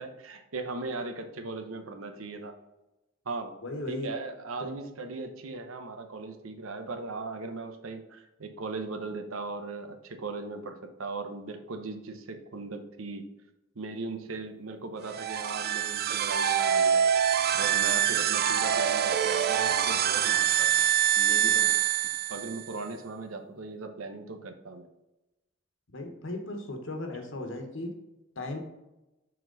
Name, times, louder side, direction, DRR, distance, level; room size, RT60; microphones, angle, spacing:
voice 1, 0.0-2.5 3.3-3.6 3.9-13.2 13.7-17.0 17.5-20.8 21.2-21.7 22.3-24.9, right 3 dB, 85° right, 7 dB, 0.8 m, -38 dB
voice 2, 3.6-4.1 4.6-4.7 25.9-27.9 28.4-28.6, left 2 dB, 65° left, 4 dB, 1.3 m, -36 dB
sound 1, 15.0-22.7, right 9 dB, 50° right, 0.4 m, -25 dB
6.5 x 4.4 x 3.9 m, 0.99 s
head